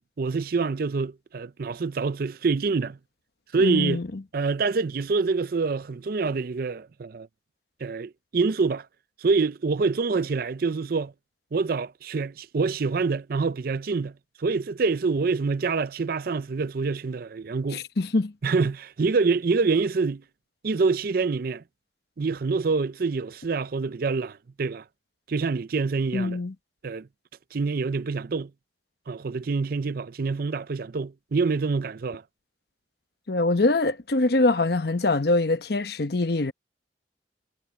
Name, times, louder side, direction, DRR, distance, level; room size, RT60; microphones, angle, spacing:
voice 1, 0.0-3.0 3.5-4.0 4.3-7.3 7.8-8.9 9.2-11.1 11.5-14.1 14.4-17.8 18.4-20.2 20.6-21.6 22.2-24.8 25.3-26.4 26.8-27.1 27.5-28.5 29.1-32.2, right 4 dB, 55° right, 0.5 m, -26 dB
voice 2, 3.6-4.2 17.7-18.3 26.1-26.5 33.3-36.5, left 2 dB, 60° left, 1.0 m, -24 dB
head